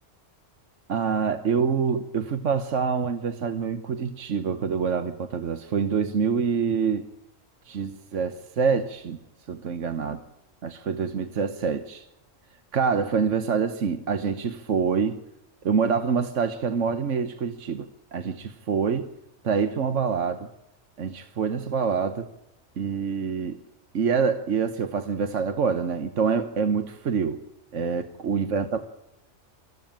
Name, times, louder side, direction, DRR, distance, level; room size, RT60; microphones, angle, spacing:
voice 1, 0.9-7.1 7.6-9.2 9.5-10.2 10.6-12.1 12.7-15.2 15.6-19.1 19.4-20.5 21.0-22.3 22.8-23.6 23.9-27.4 27.7-28.9, right 6 dB, 75° right, 1.5 m, -26 dB
24.0 x 15.5 x 9.0 m
omnidirectional pair, 1.3 m